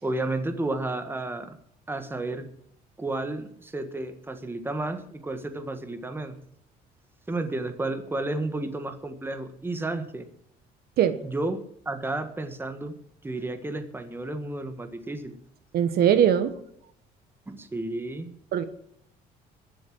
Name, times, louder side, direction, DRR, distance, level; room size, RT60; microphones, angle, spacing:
voice 1, 0.0-1.6 1.9-2.5 3.0-6.4 7.3-10.3 11.2-12.9 13.2-15.4 17.5-18.3, right 2 dB, 15° right, 8 dB, 1.6 m, -32 dB
voice 2, 15.7-16.5 18.5-18.6, right 9 dB, 65° right, 11 dB, 1.1 m, -20 dB
21.0 x 7.6 x 6.2 m, 0.69 s
cardioid pair, 110°, 17 cm